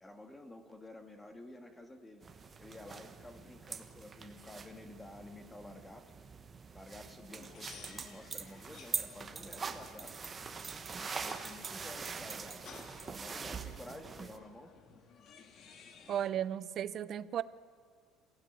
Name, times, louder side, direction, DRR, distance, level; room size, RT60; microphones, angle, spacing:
voice 1, 0.0-2.2 2.6-6.0 6.7-10.1 10.9-12.8 13.0-14.7, left 1 dB, 10° left, 7 dB, 1.8 m, -51 dB
sound 1, 2.2-14.4, right 5 dB, 20° right, 1.2 m, -44 dB
sound 2, 7.3-16.3, left 6 dB, 40° left, 2.0 m, -56 dB
voice 2, 16.1-17.4, right 10 dB, 40° right, 17 dB, 0.7 m, -35 dB
27.5 x 16.0 x 9.4 m, 2.1 s
cardioid pair, 165°, 0 cm